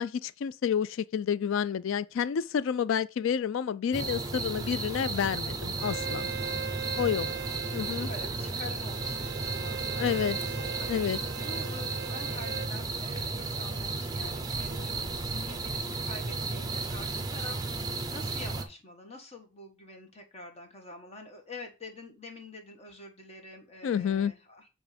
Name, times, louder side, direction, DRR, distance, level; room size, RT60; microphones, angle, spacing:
voice 1, 0.0-6.3 7.0-7.3 7.7-8.1 10.0-10.4 10.9-11.2 23.8-24.3, left 8 dB, 70° left, 0.3 m, -29 dB
sound 1, 3.9-18.6, right 3 dB, 20° right, 0.7 m, -34 dB
Bowed string instrument, 5.8-12.7, right 6 dB, 50° right, 0.7 m, -40 dB
voice 2, 7.0-7.6 8.1-10.9 11.4-24.7, left 2 dB, 30° left, 1.5 m, -47 dB
8.1 x 3.6 x 5.1 m
head